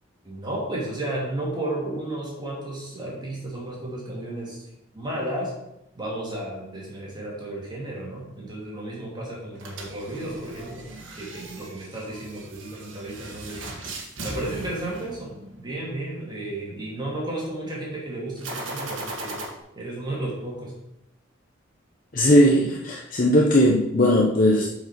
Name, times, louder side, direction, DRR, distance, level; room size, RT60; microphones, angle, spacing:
voice 1, 0.2-4.6 4.9-5.5 5.9-10.8 11.1-13.8 14.2-19.4 19.7-20.7, right 1 dB, 25° right, -4 dB, 2.6 m, -33 dB
sound 1, 9.6-15.7 18.4-19.5, right 2 dB, 80° right, 1.6 m, -38 dB
voice 2, 22.1-24.7, equal, 45° left, -2 dB, 0.8 m, -18 dB
7.8 x 5.1 x 5.2 m, 0.86 s
head